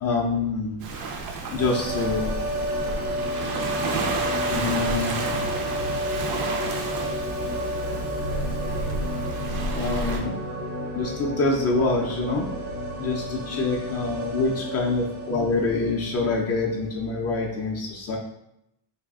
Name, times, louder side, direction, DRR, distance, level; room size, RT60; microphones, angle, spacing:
voice 1, 0.0-0.8 1.5-2.4 4.5-5.4 9.7-10.3 10.9-12.5 13.0-18.2, left 3 dB, 35° left, -1 dB, 0.4 m, -26 dB
Waves surf, 0.8-10.2, right 3 dB, 50° right, 0.5 m, -31 dB
sound 1, 1.6-16.5 16.7-16.8, equal, 70° right, 1.0 m, -31 dB
3.4 x 2.3 x 3.5 m, 0.82 s
cardioid pair, 165°, 44 cm